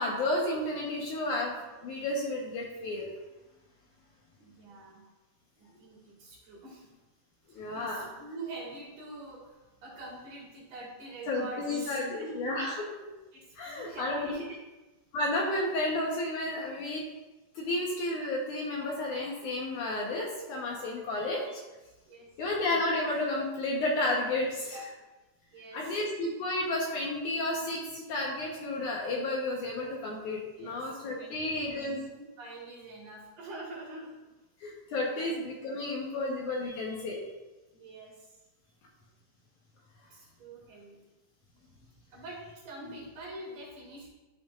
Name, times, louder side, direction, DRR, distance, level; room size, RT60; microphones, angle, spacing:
voice 1, 0.0-3.1 7.5-8.1 11.3-12.7 13.6-14.4 15.1-17.0 17.6-21.6 22.4-24.8 25.7-32.0 34.6-37.2, left 2 dB, 65° left, -2 dB, 2.1 m, -32 dB
voice 2, 4.4-5.0 5.6-6.9 7.5-12.5 13.0-14.6 20.9-21.0 22.1-22.3 24.5-24.8 25.5-26.0 30.5-34.2 35.2-35.3 36.1-36.3 37.7-38.3 40.1-41.0 42.1-44.1, right 2 dB, 60° right, -4 dB, 3.4 m, -45 dB
12.5 x 5.9 x 2.4 m, 1.1 s
omnidirectional pair, 4.3 m